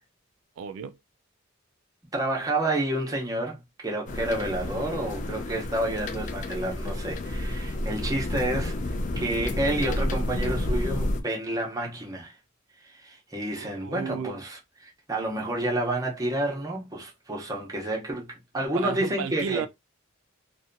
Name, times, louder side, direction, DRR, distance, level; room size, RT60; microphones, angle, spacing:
voice 1, 0.6-1.0 13.6-14.3 18.7-19.7, right 6 dB, 80° right, 0.3 m, -33 dB
voice 2, 2.1-8.8 9.2-12.3 12.8-19.7, right 1 dB, 20° right, 0.7 m, -30 dB
sound 1, 4.1-11.2, left 1 dB, 40° left, 0.4 m, -30 dB
2.7 x 2.1 x 2.5 m
head